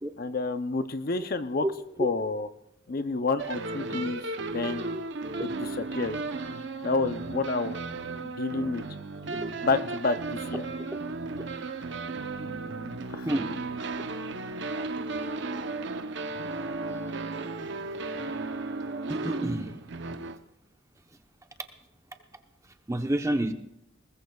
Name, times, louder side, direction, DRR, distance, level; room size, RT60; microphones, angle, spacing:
voice 1, 0.2-1.6 2.0-2.5 2.9-4.2 4.5-4.8 5.4-6.2 6.8-7.8 8.2-8.8 9.6-10.6 13.1-13.3, left 3 dB, 45° left, 11 dB, 0.6 m, -29 dB
E-Major blues, 3.4-20.4, right 3 dB, 60° right, 0.7 m, -35 dB
voice 2, 19.1-19.7 22.9-23.5, right 1 dB, 15° right, 6 dB, 0.8 m, -28 dB
21.0 x 19.5 x 2.3 m, 0.79 s
head